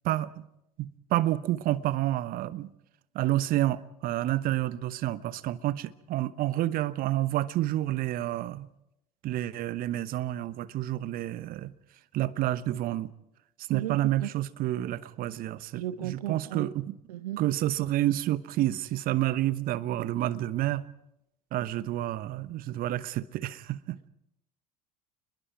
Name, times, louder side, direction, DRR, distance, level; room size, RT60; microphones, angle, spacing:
voice 1, 0.0-0.5 0.8-2.7 3.1-8.7 9.2-11.7 12.1-13.1 13.7-16.9 17.4-20.9 21.5-24.1, right 14 dB, 45° right, 1.0 m, -29 dB
voice 2, 13.7-14.3 15.7-16.7 17.1-17.4, right 13 dB, 75° right, 0.7 m, -35 dB
29.5 x 21.5 x 4.7 m
figure-of-eight pair, 70°, 20 cm